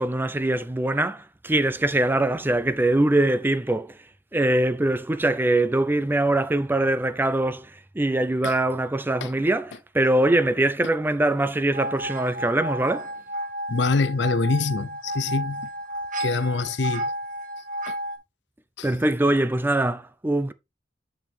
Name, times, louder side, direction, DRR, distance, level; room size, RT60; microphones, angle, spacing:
voice 1, 0.0-4.0 4.3-13.1 18.8-20.5, right 1 dB, 10° right, 0.4 m, -23 dB
sound 1, 11.7-18.2, equal, 50° right, 1.6 m, -32 dB
voice 2, 13.7-15.7 16.2-17.1 17.9-18.0 18.8-18.9, left 3 dB, 70° left, 0.5 m, -25 dB
6.3 x 6.2 x 3.4 m
head